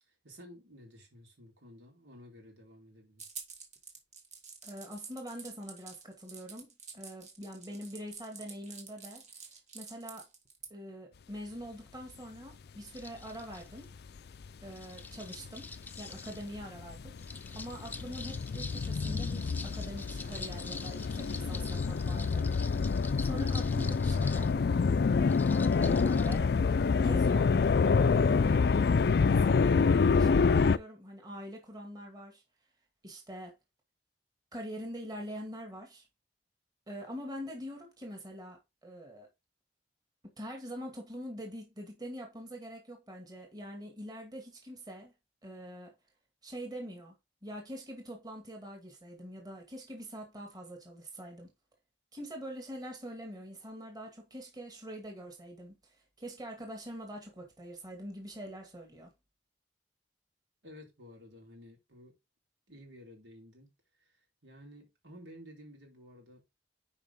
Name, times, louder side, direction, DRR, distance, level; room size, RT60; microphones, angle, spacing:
voice 1, 0.2-3.2 60.6-62.1 62.7-63.7 64.0-66.4, equal, 85° right, 3.9 m, -53 dB
sound 1, 3.2-10.7, right 5 dB, 40° right, 2.1 m, -48 dB
voice 2, 4.6-9.2 9.7-10.2 10.7-13.9 14.6-15.7 16.0-17.2 17.5-22.5 23.2-24.7 25.8-26.5 27.0-27.6 28.0-28.8 29.2-32.4 33.0-33.5 34.5-36.1 36.9-39.3 40.4-45.1 45.4-45.9 46.4-47.2 47.4-51.5 52.1-55.8 56.2-59.1, equal, 20° right, 2.1 m, -44 dB
sound 2, 12.9-13.9 14.7-16.5 17.2-24.5 25.3-26.4, left 3 dB, 10° left, 0.6 m, -46 dB
sound 3, 14.2-14.5 15.0-30.8, left 5 dB, 60° left, 0.4 m, -27 dB
10.5 x 4.9 x 3.6 m
head